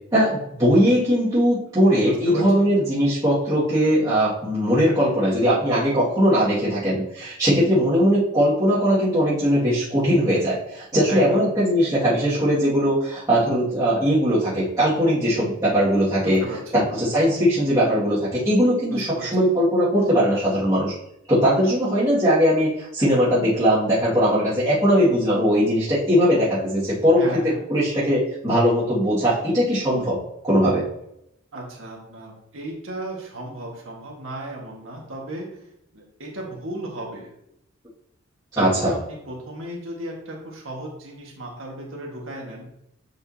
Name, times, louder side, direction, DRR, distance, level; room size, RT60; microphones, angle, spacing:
voice 1, 0.1-16.4 16.7-20.9 21.3-30.2 30.4-30.8 38.5-39.0, equal, 20° right, -12 dB, 2.0 m, -20 dB
voice 2, 2.0-2.7 11.1-11.5 16.2-16.9 18.9-19.5 27.1-27.6 31.5-35.7 35.9-37.3 38.5-42.7, right 1 dB, 75° right, -2 dB, 1.7 m, -35 dB
8.2 x 5.1 x 2.8 m, 0.79 s
head